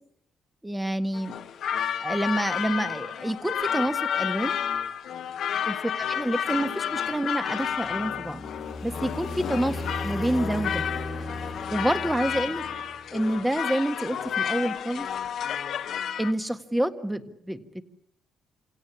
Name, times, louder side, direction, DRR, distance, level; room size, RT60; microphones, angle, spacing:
voice 1, 0.6-1.3 2.0-4.5 5.7-5.8 6.2-8.4 8.8-10.8 11.7-12.6 13.1-15.1 16.2-17.6, right 1 dB, 5° right, 8 dB, 1.7 m, -28 dB
sound 1, 1.1-16.3, left 8 dB, 70° left, 1.2 m, -31 dB
sound 2, 7.6-13.3, left 2 dB, 20° left, 1.9 m, -36 dB
27.0 x 17.0 x 8.7 m, 0.76 s
cardioid pair, 90°, 0 cm